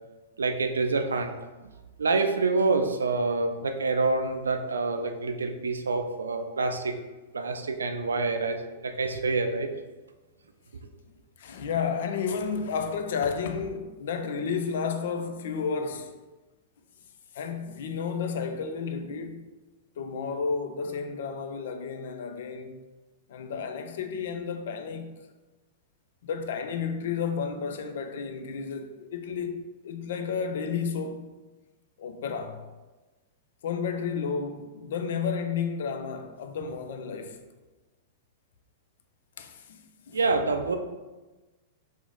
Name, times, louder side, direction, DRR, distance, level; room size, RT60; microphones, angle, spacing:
voice 1, 0.4-1.3 2.0-6.9 7.3-8.6 8.8-9.7 40.1-40.8, right 3 dB, 85° right, 0.3 m, -27 dB
voice 2, 11.4-16.2 17.3-19.5 20.0-22.8 23.3-25.2 26.2-31.3 32.0-32.6 33.6-37.4 39.4-40.2, left 6 dB, 70° left, 0.3 m, -32 dB
3.0 x 2.1 x 3.8 m
hypercardioid pair, 110°, 0 cm